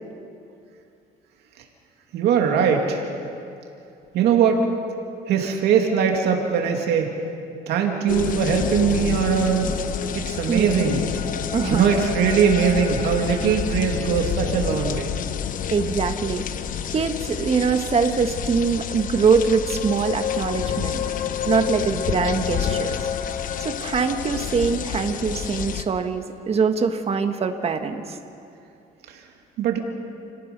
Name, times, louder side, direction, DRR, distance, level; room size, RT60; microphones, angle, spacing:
voice 1, 2.1-3.1 4.1-4.6 5.3-7.1 7.7-9.7 10.1-11.0 11.6-15.1 29.6-29.8, right 7 dB, 75° right, 2 dB, 2.6 m, -21 dB
sound 1, 8.1-25.8, left 9 dB, 55° left, 1.0 m, -28 dB
voice 2, 11.5-12.0 15.7-16.6 16.9-21.0 21.4-23.0 23.6-28.2, right 5 dB, 35° right, 6 dB, 1.7 m, -23 dB
30.0 x 17.5 x 5.5 m, 2.6 s
cardioid pair, 110°, 17 cm